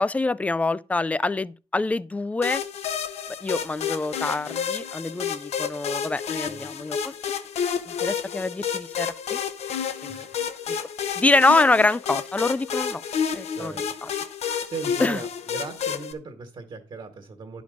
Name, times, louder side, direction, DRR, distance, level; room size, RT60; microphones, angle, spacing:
voice 1, 0.0-2.6 3.4-7.1 7.9-9.4 10.0-10.3 11.2-13.0 13.3-13.7 14.0-14.1 15.0-15.2, left 3 dB, 10° left, 0.3 m, -25 dB
sound 1, 2.4-16.1, left 7 dB, 75° left, 0.9 m, -30 dB
voice 2, 13.5-13.9 14.6-17.6, right 3 dB, 50° right, 1.7 m, -37 dB
10.5 x 5.1 x 5.2 m
cardioid pair, 125°, 11 cm